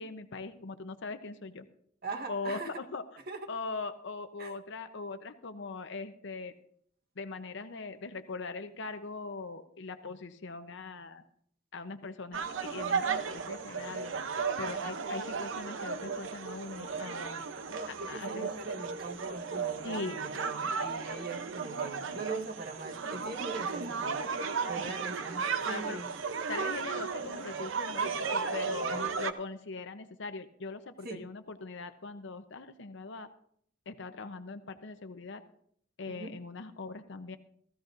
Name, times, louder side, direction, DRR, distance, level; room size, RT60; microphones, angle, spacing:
voice 1, 0.0-1.7 2.3-3.1 3.5-6.5 7.2-11.2 11.7-14.1 14.6-17.5 18.1-18.5 19.8-20.2 24.8-25.0 25.7-26.0 26.5-33.3 33.9-35.4 36.0-37.4, left 3 dB, 65° left, 9 dB, 0.8 m, -41 dB
voice 2, 2.0-2.7 3.3-3.5 4.4-4.5 14.7-14.9 17.7-24.2 24.7-26.1 28.9-29.1 31.0-31.2 36.1-36.3, right 3 dB, 55° right, 3 dB, 1.5 m, -41 dB
sound 1, 12.3-29.3, right 5 dB, 75° right, 0.7 m, -35 dB
16.0 x 15.0 x 2.6 m, 0.65 s
head